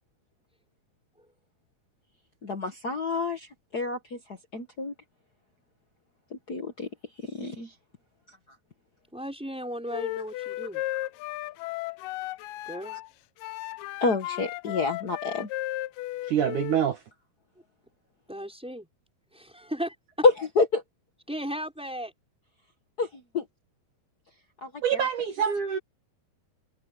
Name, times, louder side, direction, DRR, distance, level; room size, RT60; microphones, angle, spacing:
voice 1, 2.4-4.2 4.5-4.9 6.3-6.9 7.2-7.7 14.0-15.5 20.2-20.8 23.0-23.4 24.6-25.1, left 3 dB, 65° left, 0.9 m, -28 dB
voice 2, 9.1-10.8 12.7-13.0 18.3-18.9 19.3-20.3 21.3-22.1, equal, ahead, 5.9 m, -35 dB
Wind instrument woodwind instrument, 9.9-13.1 13.4-16.8, left 17 dB, 80° left, 1.9 m, -35 dB
voice 3, 16.3-17.0 24.8-25.8, right 8 dB, 65° right, 2.4 m, -26 dB
omnidirectional pair, 4.5 m